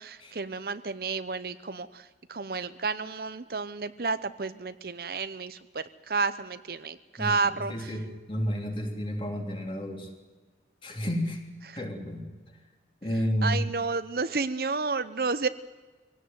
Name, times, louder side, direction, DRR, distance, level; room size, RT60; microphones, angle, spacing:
voice 1, 0.0-7.9 13.4-15.5, right 4 dB, 55° right, 13 dB, 0.8 m, -31 dB
voice 2, 7.2-10.1 10.8-11.4 11.7-12.3 13.0-13.6, equal, 30° left, 2 dB, 3.5 m, -31 dB
23.5 x 17.5 x 9.5 m, 1.3 s
head